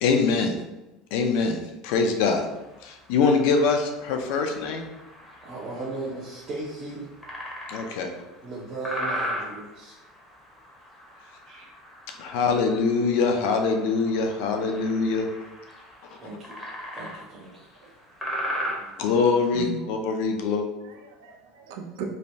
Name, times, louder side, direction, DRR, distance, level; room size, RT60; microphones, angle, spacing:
voice 1, 0.0-0.5 1.1-2.4 2.8-4.8 7.7-8.1 12.2-15.3 19.0-20.7, left 4 dB, 70° left, 4 dB, 0.4 m, -23 dB
sound 1, 2.2-19.5, equal, 10° left, 0.7 m, -38 dB
voice 2, 5.4-7.1 8.4-9.9 11.5-11.7 16.2-16.6 16.9-17.5, right 2 dB, 40° right, -6 dB, 0.6 m, -36 dB
voice 3, 19.5-19.8 20.8-22.0, right 8 dB, 85° right, 2 dB, 0.4 m, -38 dB
3.1 x 2.2 x 2.6 m, 1.0 s
supercardioid pair, 120°, 0 cm